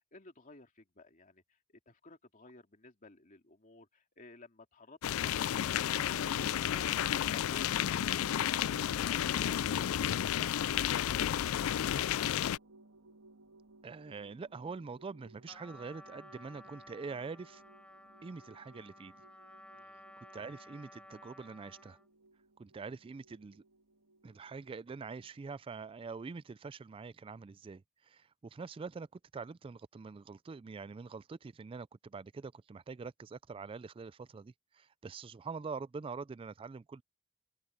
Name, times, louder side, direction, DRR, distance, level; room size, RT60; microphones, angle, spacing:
voice 1, 0.1-1.6 1.9-10.1 19.7-20.1, left 3 dB, 40° left, 2.7 m, -56 dB
sound 1, 5.0-12.6, left 10 dB, 85° left, 0.3 m, -32 dB
sound 2, 5.5-25.3, right 2 dB, 80° right, 1.6 m, -58 dB
voice 2, 13.8-17.6 18.2-19.1 20.3-22.0 22.6-23.6 24.2-29.1 29.3-37.0, right 4 dB, 25° right, 0.3 m, -44 dB
Trumpet, 15.5-22.1, left 1 dB, 5° left, 4.8 m, -55 dB
open air
head